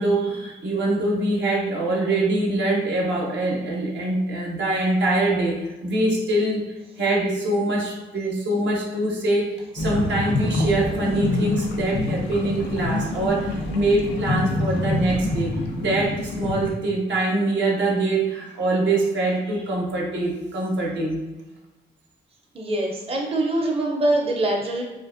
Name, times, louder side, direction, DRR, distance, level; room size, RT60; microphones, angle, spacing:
voice 1, 0.0-6.6 7.0-21.2, right 2 dB, 75° right, -2 dB, 0.6 m, -24 dB
sound 1, 9.8-16.8, left 2 dB, 75° left, 0.5 m, -26 dB
voice 2, 22.5-24.8, right 1 dB, 30° right, -1 dB, 0.5 m, -23 dB
2.5 x 2.2 x 2.4 m, 1.1 s
cardioid pair, 55°, 19 cm